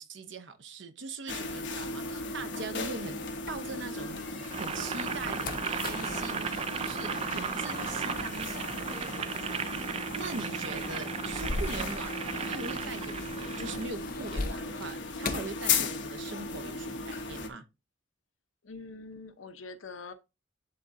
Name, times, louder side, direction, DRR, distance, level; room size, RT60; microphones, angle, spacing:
voice 1, 0.0-17.6, right 3 dB, 65° right, 0.8 m, -42 dB
sound 1, 1.3-17.5, left 4 dB, 65° left, 1.3 m, -36 dB
sound 2, 1.4-4.2 4.6-16.4 16.7-17.5, left 3 dB, 45° left, 0.7 m, -42 dB
Boiling, 4.4-13.8, right 6 dB, 30° right, 0.3 m, -36 dB
voice 2, 18.6-20.1, left 3 dB, 80° left, 0.9 m, -44 dB
11.0 x 3.7 x 2.7 m
head